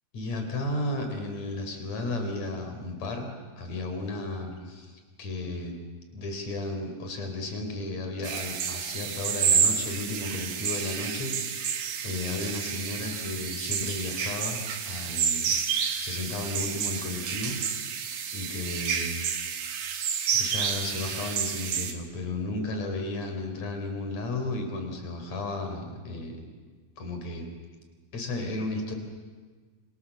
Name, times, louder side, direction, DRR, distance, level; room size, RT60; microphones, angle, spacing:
voice 1, 0.1-3.3 3.6-5.7 6.1-17.6 18.3-19.2 19.8-20.0 20.3-26.5 27.0-27.5 28.1-28.9, left 2 dB, 40° left, 5 dB, 4.7 m, -34 dB
Birds In Light Rain Ambience (Scotland), 8.2-21.9, right 7 dB, 55° right, 2.7 m, -30 dB
28.5 x 27.0 x 7.2 m, 1.4 s
omnidirectional pair, 4.9 m